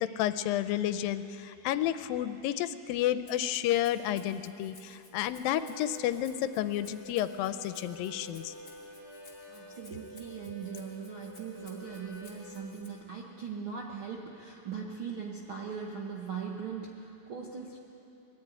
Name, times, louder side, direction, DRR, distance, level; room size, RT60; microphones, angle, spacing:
voice 1, 0.0-8.5, left 12 dB, 85° left, 12 dB, 2.3 m, -31 dB
Rattle (instrument), 3.3-12.9, left 4 dB, 30° left, 2.6 m, -58 dB
Harmonica, 5.3-12.7, equal, 45° right, 7.7 m, -48 dB
voice 2, 9.5-17.8, right 6 dB, 65° right, -1 dB, 1.2 m, -40 dB
20.5 x 14.0 x 9.2 m, 3.0 s
omnidirectional pair, 4.1 m